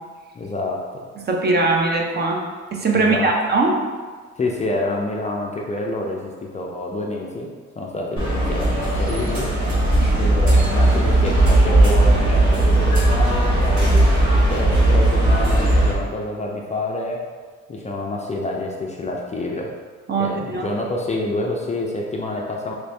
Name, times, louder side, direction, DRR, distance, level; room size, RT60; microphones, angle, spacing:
voice 1, 0.3-1.1 2.9-3.3 4.4-9.7 10.2-17.2 17.7-19.7 20.2-22.7, left 2 dB, 25° left, -1 dB, 0.3 m, -28 dB
voice 2, 1.2-2.4 2.7-3.7 10.0-10.1 20.1-20.7, right 3 dB, 35° right, 0 dB, 0.5 m, -20 dB
sound 1, 8.2-15.9, right 1 dB, 70° right, 1.1 m, -17 dB
3.1 x 2.6 x 3.3 m, 1.6 s
cardioid pair, 90°, 30 cm